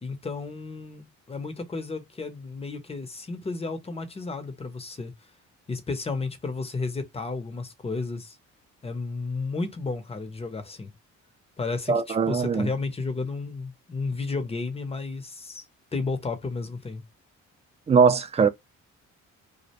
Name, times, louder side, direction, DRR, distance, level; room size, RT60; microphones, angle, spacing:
voice 1, 0.0-5.1 5.7-8.4 8.8-10.9 11.6-15.7 15.9-17.1, left 3 dB, 20° left, 0.6 m, -32 dB
voice 2, 11.9-12.7 17.9-18.5, right 5 dB, 20° right, 0.4 m, -20 dB
2.4 x 2.1 x 2.8 m
cardioid pair, 90°, 30 cm